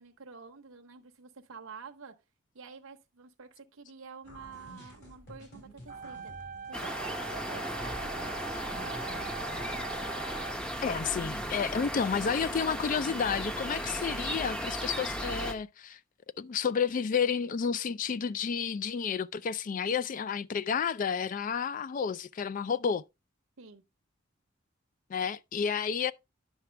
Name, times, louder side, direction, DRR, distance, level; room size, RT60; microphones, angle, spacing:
voice 1, 0.0-2.1 2.5-6.3 6.7-9.2 23.6-23.8, right 5 dB, 85° right, 0.8 m, -49 dB
sound 1, 4.2-11.5, equal, 55° left, 4.1 m, -50 dB
sound 2, 5.9-10.9, right 6 dB, 40° right, 0.3 m, -42 dB
sound 3, 6.7-15.5, equal, 5° left, 0.7 m, -36 dB
voice 2, 10.8-16.0 16.4-23.0 25.1-26.1, left 6 dB, 40° left, 0.3 m, -31 dB
9.7 x 5.9 x 3.3 m
head